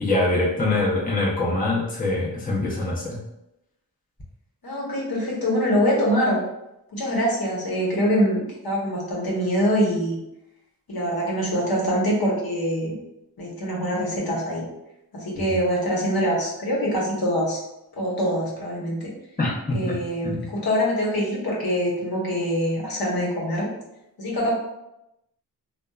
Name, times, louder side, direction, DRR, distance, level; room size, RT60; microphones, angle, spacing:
voice 1, 0.0-3.2 15.3-15.6 19.4-19.9 20.2-20.5, left 2 dB, 20° left, -5 dB, 0.7 m, -24 dB
voice 2, 4.6-6.4 6.9-8.4 8.6-10.2 10.9-13.0 13.4-14.6 15.1-17.6 18.0-19.1 19.7-23.7 24.2-24.5, equal, 60° left, -4 dB, 1.0 m, -24 dB
2.8 x 2.1 x 2.3 m, 0.88 s
cardioid pair, 40°, 42 cm